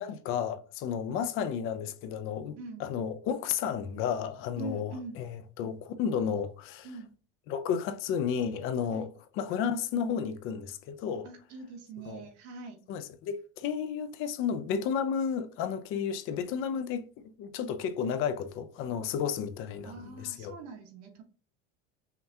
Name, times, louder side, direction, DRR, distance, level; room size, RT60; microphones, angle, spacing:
voice 1, 0.0-5.3 5.6-6.9 7.5-9.1 9.3-11.3 12.1-12.2 12.9-17.0 17.4-20.5, left 7 dB, 40° left, 0.4 m, -32 dB
voice 2, 4.6-5.2 6.8-7.1 8.9-9.1 11.2-12.8 19.8-21.2, right 3 dB, 80° right, 1.4 m, -43 dB
5.7 x 2.2 x 2.7 m
cardioid pair, 155°, 32 cm